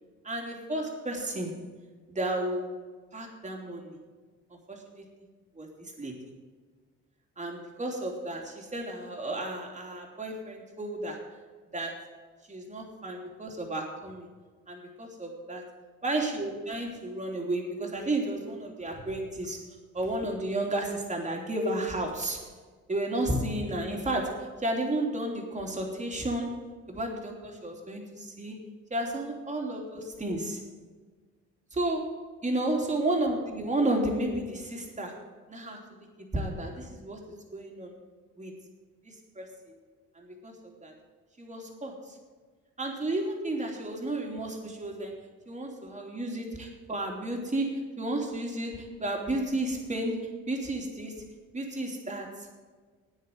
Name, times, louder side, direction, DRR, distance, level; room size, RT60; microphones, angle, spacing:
voice 1, 0.2-1.6 2.1-2.7 3.1-4.0 4.7-5.1 5.6-6.2 7.4-11.2 11.7-12.1 12.5-14.3 14.7-15.6 16.0-19.6 19.9-22.5 22.9-28.6 28.9-30.6 31.7-35.2 35.5-36.1 36.3-38.0 38.4-38.5 39.0-39.5 40.1-40.9 41.4-42.2 42.8-45.2 45.5-51.2 51.5-52.5, right 1 dB, 25° right, 1 dB, 3.2 m, -32 dB
9.4 x 9.1 x 9.4 m, 1.4 s
cardioid pair, 90°, 30 cm